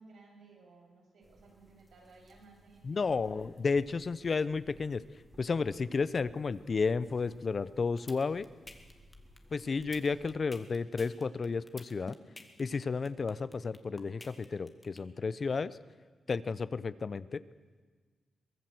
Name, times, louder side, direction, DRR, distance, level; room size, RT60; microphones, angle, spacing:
voice 1, 0.0-3.5, right 3 dB, 75° right, 1 dB, 6.8 m, -58 dB
sound 1, 1.2-10.4, equal, 20° right, 3.6 m, -60 dB
voice 2, 2.8-5.0 5.4-8.5 9.5-12.2 12.6-15.8 16.3-17.4, left 4 dB, 40° left, 16 dB, 0.7 m, -32 dB
sound 2, 7.7-15.0, left 2 dB, 20° left, 2.2 m, -50 dB
23.5 x 19.5 x 7.9 m, 1.4 s
wide cardioid pair, 120°, 0 cm